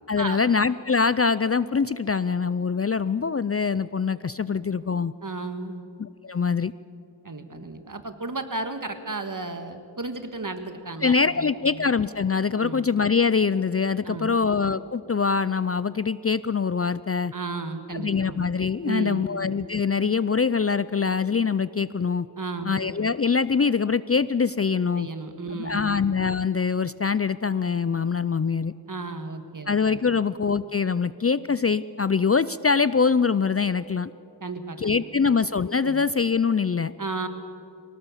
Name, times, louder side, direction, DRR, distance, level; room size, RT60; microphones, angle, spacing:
voice 1, 0.1-5.1 6.0-6.7 11.0-17.3 17.9-22.3 22.7-25.1 25.5-28.7 29.7-34.1 34.8-36.9, left 5 dB, 35° left, 16 dB, 0.4 m, -24 dB
voice 2, 5.2-5.9 7.2-11.9 12.6-12.9 14.0-14.4 17.3-18.5 18.8-19.4 22.4-22.8 25.0-26.0 28.9-30.2 34.4-35.3 35.8-36.1 37.0-37.3, right 3 dB, 45° right, 8 dB, 1.8 m, -34 dB
23.5 x 18.0 x 7.3 m, 2.7 s
wide cardioid pair, 55°, 43 cm